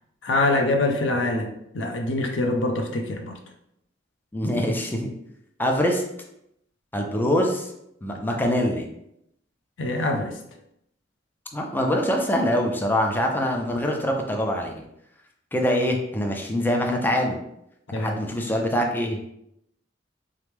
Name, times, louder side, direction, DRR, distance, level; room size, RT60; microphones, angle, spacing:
voice 1, 0.2-3.4 9.8-10.3 17.9-18.2, left 2 dB, 80° left, 4 dB, 0.6 m, -24 dB
voice 2, 4.3-5.1 5.6-6.0 6.9-7.7 8.0-8.9 11.5-14.7 15.5-17.4 18.0-19.2, equal, 10° left, 2 dB, 0.4 m, -24 dB
3.7 x 3.0 x 3.5 m, 0.78 s
head